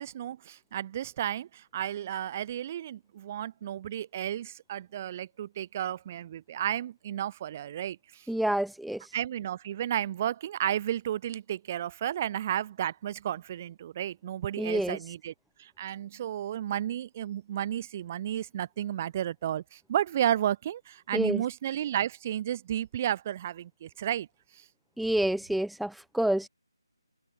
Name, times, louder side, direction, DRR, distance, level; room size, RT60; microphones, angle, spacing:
voice 1, 0.0-8.3 9.1-15.3 15.6-24.3 24.5-24.7, right 11 dB, 25° right, 5.3 m, -32 dB
voice 2, 8.3-9.1 14.6-15.0 21.1-21.4 25.0-26.5, right 1 dB, ahead, 1.6 m, -28 dB
figure-of-eight pair, 165°, 3 cm